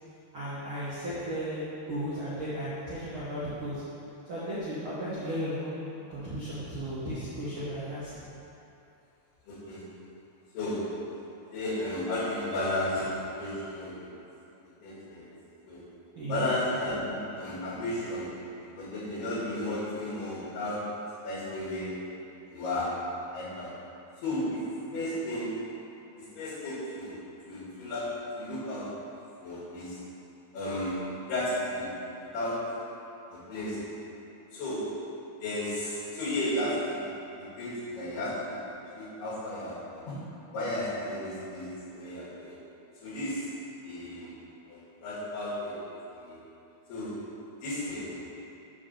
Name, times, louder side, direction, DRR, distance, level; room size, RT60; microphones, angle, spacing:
voice 1, 0.3-3.8 4.2-8.1 16.1-16.5, equal, 65° right, -11 dB, 1.3 m, -35 dB
voice 2, 9.5-9.8 10.5-11.0 11.5-14.1 14.8-15.3 15.7-15.8 16.3-18.3 18.8-21.0 21.2-22.0 22.5-23.7 24.2-25.7 26.2-29.0 29.4-30.0 30.5-31.9 32.3-32.8 33.3-33.9 34.5-35.0 35.4-37.1 37.4-40.2 40.5-42.6 43.0-43.5 43.8-44.3 44.7-46.4 46.9-47.3 47.6-48.1, left 1 dB, 80° left, -8 dB, 4.1 m, -34 dB
8.4 x 3.9 x 6.8 m, 2.8 s
omnidirectional pair, 4.6 m